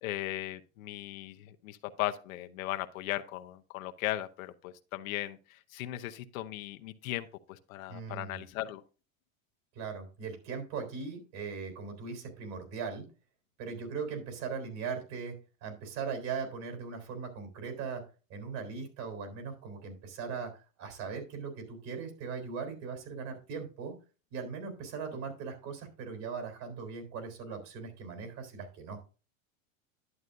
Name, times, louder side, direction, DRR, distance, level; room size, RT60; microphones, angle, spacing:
voice 1, 0.0-8.8, left 15 dB, 80° left, 0.8 m, -37 dB
voice 2, 7.9-8.4 9.7-13.1 13.6-15.3 15.6-18.0 18.3-23.9 24.3-29.0, right 5 dB, 60° right, 3.9 m, -39 dB
11.0 x 8.0 x 2.6 m
supercardioid pair, 125°, 41 cm